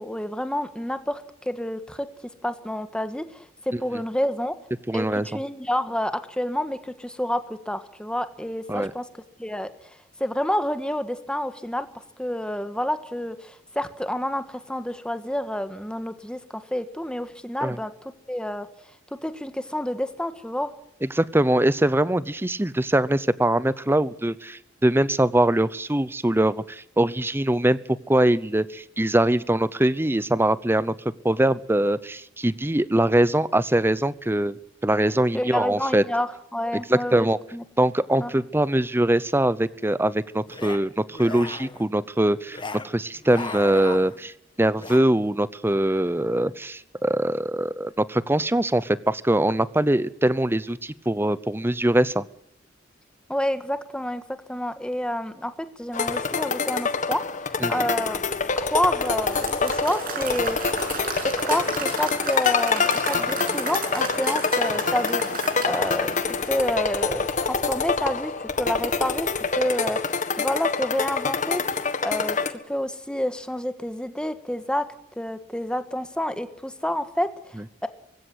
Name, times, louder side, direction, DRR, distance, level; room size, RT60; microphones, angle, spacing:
voice 1, 0.0-2.1 2.4-4.5 4.9-9.0 9.4-9.7 10.2-11.9 12.2-17.9 18.3-18.7 19.2-20.7 35.3-37.6 38.2-38.4 53.3-54.2 54.5-57.2 57.7-58.2 58.6-60.6 61.4-65.2 65.7-71.6 72.0-74.8 75.2-77.6 77.8-77.9, left 1 dB, 5° left, 10 dB, 1.5 m, -29 dB
voice 2, 4.9-5.3 8.7-8.9 17.6-17.8 21.0-27.8 28.1-31.0 31.2-34.6 34.8-36.0 36.7-37.4 37.8-42.6 42.8-44.3 44.6-52.3 57.6-57.7, right 1 dB, 10° right, 17 dB, 0.8 m, -22 dB
sound 1, 40.5-40.8 41.1-41.8 42.5-42.9 43.2-44.3 44.8-45.0, left 3 dB, 25° left, 1.4 m, -36 dB
sound 2, 55.9-72.5, left 4 dB, 40° left, 1.6 m, -26 dB
Applause / Crowd, 58.8-67.0, right 3 dB, 50° right, 7.5 m, -34 dB
20.0 x 16.5 x 9.6 m, 0.78 s
head